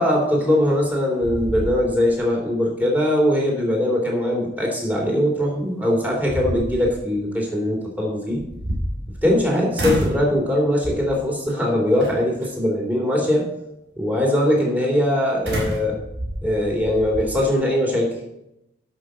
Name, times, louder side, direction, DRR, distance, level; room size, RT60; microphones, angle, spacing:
voice 1, 0.0-8.4 9.2-13.5 14.0-16.0 16.4-18.1, left 1 dB, 10° right, -1 dB, 3.1 m, -21 dB
sound 1, 0.6-0.9 1.2-2.2 2.6-2.7 5.4-5.5 6.0-7.0 8.3-9.4 9.8-10.3 10.8-11.2 12.0-12.5 15.5-17.3, equal, 75° right, 5.1 m, -29 dB
11.5 x 6.0 x 6.3 m, 0.85 s
head